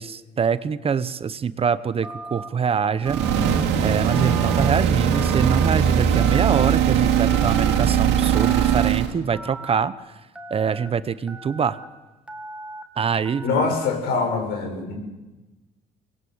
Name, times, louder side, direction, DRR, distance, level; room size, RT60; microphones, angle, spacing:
voice 1, 0.0-3.2 3.8-9.9 10.5-11.8 13.0-13.7, right 6 dB, 35° right, 15 dB, 1.0 m, -24 dB
Telephone, 2.0-2.5 3.0-3.6 4.1-4.7 5.1-5.7 6.1-6.7 7.3-7.8 8.3-8.9 9.3-9.8 10.3-10.9 11.3-11.8 12.3-12.8 13.2-13.8, right 2 dB, 5° right, 2.3 m, -37 dB
sound 1, 3.0-9.1, right 8 dB, 85° right, 2.8 m, -20 dB
voice 2, 13.4-14.9, left 4 dB, 85° left, 3 dB, 7.5 m, -24 dB
24.5 x 20.5 x 8.2 m, 1.1 s
cardioid pair, 110°, 17 cm